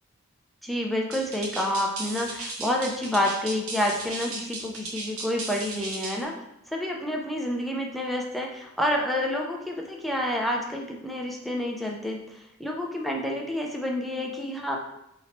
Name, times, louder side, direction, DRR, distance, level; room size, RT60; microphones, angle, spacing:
voice 1, 0.6-6.4 6.7-14.8, left 1 dB, ahead, 0 dB, 0.3 m, -29 dB
sound 1, 1.1-6.2, right 3 dB, 80° right, 0.9 m, -36 dB
4.3 x 2.8 x 2.8 m, 0.84 s
head